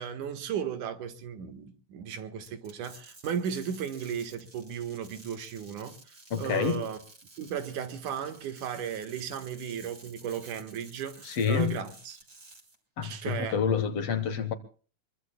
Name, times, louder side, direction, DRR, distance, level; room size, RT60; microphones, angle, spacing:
voice 1, 0.0-5.9 6.4-7.0 7.4-12.2 13.0-13.6, right 8 dB, 85° right, 3.0 m, -35 dB
sound 1, 2.4-12.7, right 2 dB, 30° right, 3.6 m, -53 dB
voice 2, 6.3-6.8 11.2-11.8 13.0-14.5, left 6 dB, 60° left, 2.2 m, -28 dB
24.5 x 23.0 x 2.3 m
omnidirectional pair, 3.4 m